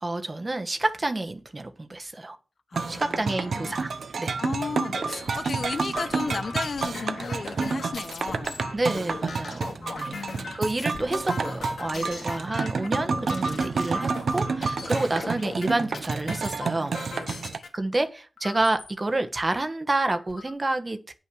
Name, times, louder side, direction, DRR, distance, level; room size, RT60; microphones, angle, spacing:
voice 1, 0.0-2.4 2.9-3.9 4.2-4.4 8.7-10.2 10.5-17.0 17.7-21.1, right 2 dB, 30° right, 1.2 m, -29 dB
voice 2, 2.7-3.8 4.4-8.6 10.1-10.5 11.9-12.3 13.5-13.8 14.8-14.9 17.1-17.6, left 4 dB, 55° left, 1.0 m, -35 dB
sound 1, 2.7-17.6, right 4 dB, 70° right, 0.8 m, -30 dB
sound 2, 4.8-17.7 18.4-18.9 19.5-19.6 19.9-20.5, left 4 dB, 80° left, 2.2 m, -39 dB
9.3 x 5.8 x 6.1 m
cardioid pair, 75°, 0 cm